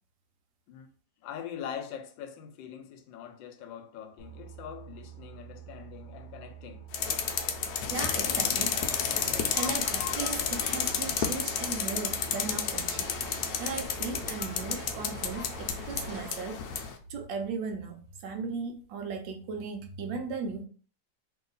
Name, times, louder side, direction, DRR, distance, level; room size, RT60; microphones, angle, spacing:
voice 1, 1.2-6.9, left 8 dB, 90° left, 1.3 m, -42 dB
Boat Water vehicle, 4.2-15.7, right 10 dB, 35° left, 0.4 m, -47 dB
sound 1, 6.9-16.9, left 7 dB, 70° left, 1.0 m, -31 dB
voice 2, 7.9-8.8 9.5-13.1 13.6-20.7, right 4 dB, 85° right, 1.4 m, -37 dB
sound 2, 8.1-16.3, right 2 dB, 45° right, 0.8 m, -46 dB
3.1 x 2.8 x 3.9 m
omnidirectional pair, 2.0 m